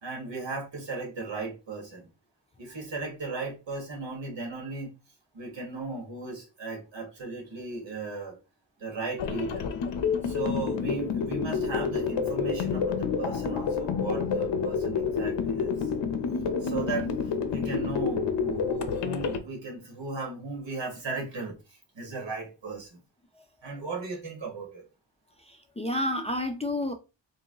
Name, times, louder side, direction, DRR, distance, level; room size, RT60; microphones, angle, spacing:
voice 1, 0.0-2.1 2.6-4.9 5.3-8.4 8.8-9.7 10.2-15.9 16.6-17.1 17.5-23.0 23.6-24.8, right 3 dB, 75° right, 2.0 m, -36 dB
sound 1, 9.2-19.4, left 6 dB, 65° left, 0.7 m, -29 dB
voice 2, 25.4-26.9, left 1 dB, 15° left, 0.4 m, -30 dB
3.8 x 2.7 x 3.7 m
wide cardioid pair, 180°, 45 cm